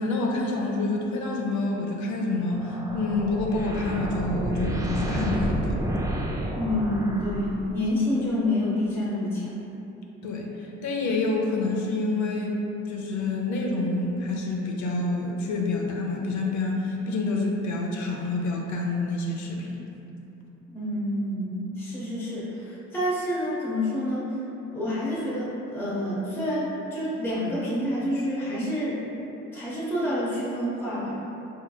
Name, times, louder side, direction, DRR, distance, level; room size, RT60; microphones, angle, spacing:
voice 1, 0.0-5.8 10.2-19.8, left 2 dB, 75° left, 0 dB, 0.6 m, -28 dB
sound 1, 2.5-7.9, right 1 dB, 10° right, 0.3 m, -30 dB
voice 2, 6.6-9.6 20.7-24.4 24.7-29.0 29.5-31.2, left 1 dB, 5° left, -9 dB, 0.7 m, -28 dB
4.2 x 2.8 x 2.3 m, 3.0 s
cardioid pair, 90°, 30 cm